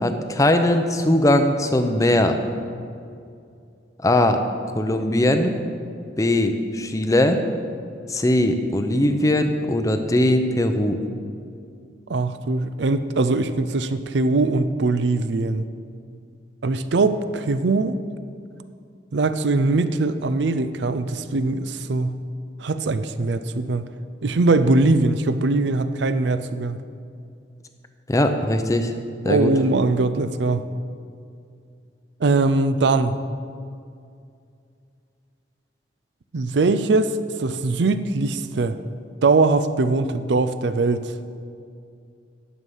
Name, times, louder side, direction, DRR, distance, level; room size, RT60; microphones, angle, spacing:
voice 1, 0.0-2.4 4.0-4.4 4.8-5.5 6.2-7.4 8.1-11.0 28.1-28.9 29.2-29.5, left 1 dB, 20° left, 7 dB, 0.6 m, -20 dB
voice 2, 12.1-15.6 16.6-18.0 19.1-22.2 22.6-23.8 24.2-26.8 29.3-30.6 32.2-33.2 36.3-37.1 37.4-38.8 39.2-41.0, right 3 dB, 70° right, 12 dB, 0.5 m, -21 dB
11.0 x 7.2 x 5.5 m, 2.4 s
head